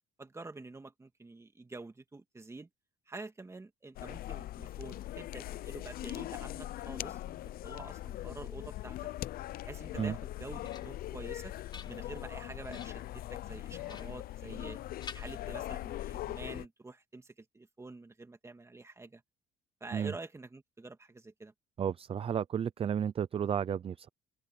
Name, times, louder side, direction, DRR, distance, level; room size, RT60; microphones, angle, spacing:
voice 1, 0.2-2.7 3.1-7.4 7.6-9.1 9.6-11.5 11.9-14.8 15.1-19.2 19.8-21.5, right 3 dB, 15° right, 2.4 m, -47 dB
sound 1, 3.9-16.6, left 14 dB, 60° left, 0.6 m, -41 dB
sound 2, 10.6-11.1 11.5-12.3 12.7-13.1 13.9-14.7 15.0-16.0, left 4 dB, 25° left, 1.5 m, -51 dB
voice 2, 21.8-24.1, right 8 dB, 35° right, 0.5 m, -32 dB
cardioid pair, 110°, 17 cm